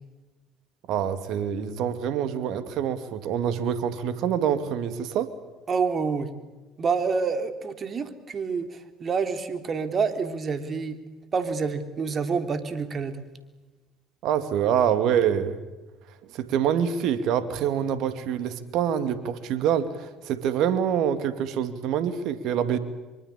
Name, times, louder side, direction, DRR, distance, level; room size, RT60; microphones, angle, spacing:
voice 1, 0.9-5.3 14.2-15.6 16.3-22.8, right 9 dB, 65° right, 11 dB, 2.5 m, -26 dB
voice 2, 5.7-6.3 6.8-11.0 11.3-13.2, right 5 dB, 40° right, 9 dB, 3.3 m, -27 dB
24.5 x 24.5 x 8.5 m, 1.2 s
hypercardioid pair, 65°, 0 cm